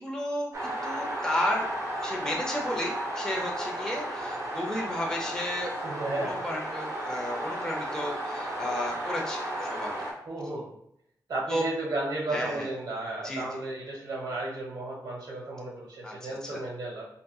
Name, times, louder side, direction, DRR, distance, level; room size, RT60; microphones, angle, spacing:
voice 1, 0.0-1.7 2.0-5.8 6.2-10.1 11.5-11.6 12.3-12.7 13.2-13.6 16.0-16.6, left 1 dB, 10° left, -2 dB, 0.5 m, -33 dB
sound 1, 0.5-10.1, right 1 dB, 50° right, 1.0 m, -34 dB
voice 2, 5.8-6.4 10.2-10.7 11.3-17.0, right 2 dB, 75° right, -3 dB, 1.1 m, -33 dB
3.6 x 2.6 x 2.3 m, 0.72 s
wide cardioid pair, 150°, 7 cm